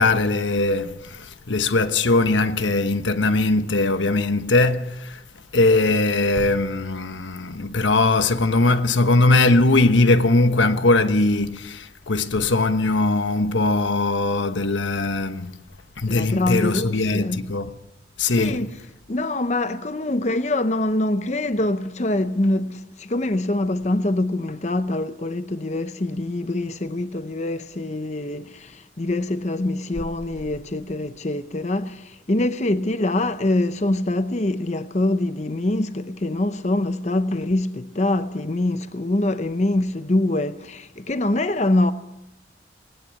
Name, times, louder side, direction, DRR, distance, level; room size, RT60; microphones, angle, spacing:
voice 1, 0.0-5.2 5.5-15.6 16.0-17.7 18.2-18.7, left 2 dB, 85° left, 1.2 m, -20 dB
voice 2, 16.1-17.5 18.3-18.7 19.1-41.9, left 1 dB, 35° left, 0.7 m, -24 dB
19.5 x 19.0 x 8.3 m
head